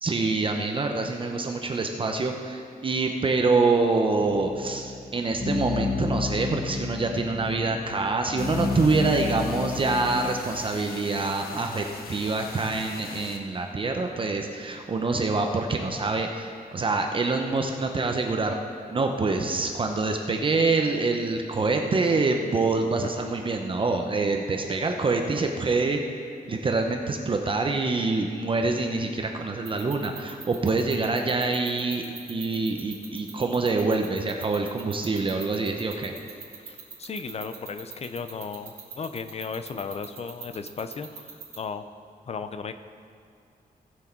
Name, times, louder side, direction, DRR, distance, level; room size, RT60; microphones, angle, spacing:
voice 1, 0.0-18.6 18.9-36.1, right 3 dB, 35° right, 3 dB, 0.8 m, -26 dB
sound 1, 4.2-10.4, left 4 dB, 20° left, 1.3 m, -31 dB
sound 2, 8.4-13.4, left 5 dB, 75° left, 1.0 m, -42 dB
sound 3, 29.6-41.6, right 7 dB, 80° right, 2.6 m, -41 dB
voice 2, 36.6-41.3 41.6-41.8 42.3-42.7, left 5 dB, 40° left, 9 dB, 0.6 m, -35 dB
18.5 x 6.2 x 4.5 m, 2.4 s
wide cardioid pair, 150°, 16 cm